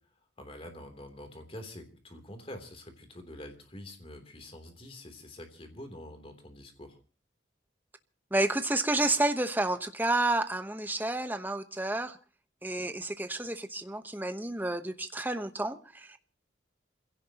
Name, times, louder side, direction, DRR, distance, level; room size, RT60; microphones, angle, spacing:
voice 1, 0.4-7.0, left 1 dB, 30° left, 6 dB, 3.2 m, -46 dB
voice 2, 8.3-12.2 12.6-16.2, right 2 dB, 10° right, 9 dB, 1.1 m, -30 dB
27.5 x 16.5 x 3.0 m, 0.37 s
head